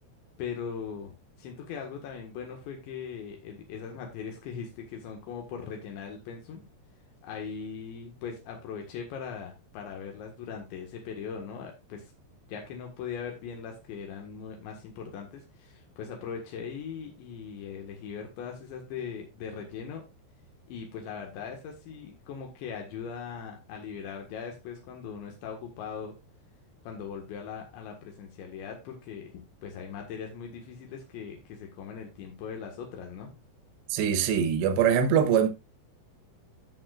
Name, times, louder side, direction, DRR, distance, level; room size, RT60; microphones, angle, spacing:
voice 1, 0.4-6.6 7.2-12.1 12.5-20.0 20.7-26.2 26.9-33.4, left 6 dB, 80° left, 3.9 m, -40 dB
voice 2, 33.9-35.5, right 8 dB, 75° right, 3.2 m, -23 dB
14.0 x 6.8 x 2.5 m
omnidirectional pair, 5.1 m